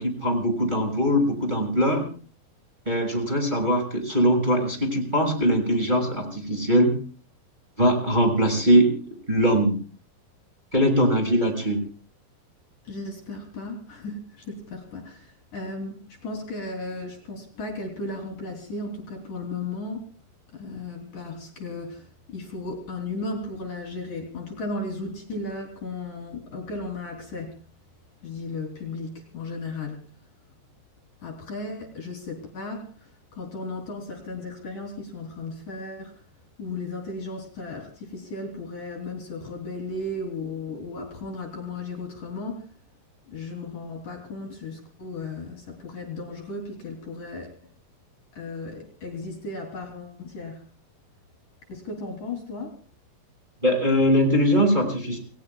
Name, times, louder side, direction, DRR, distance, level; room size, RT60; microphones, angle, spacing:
voice 1, 0.0-2.1 2.8-6.9 7.8-9.7 10.7-11.8 53.6-55.2, equal, 10° right, 1 dB, 6.6 m, -21 dB
voice 2, 12.9-20.0 20.5-27.6 28.2-30.0 31.2-32.9 33.3-36.2 36.6-42.7 43.3-47.5 48.4-50.6 51.7-52.8, left 2 dB, 50° left, 2 dB, 4.6 m, -35 dB
30.0 x 19.5 x 2.4 m, 0.41 s
omnidirectional pair, 4.9 m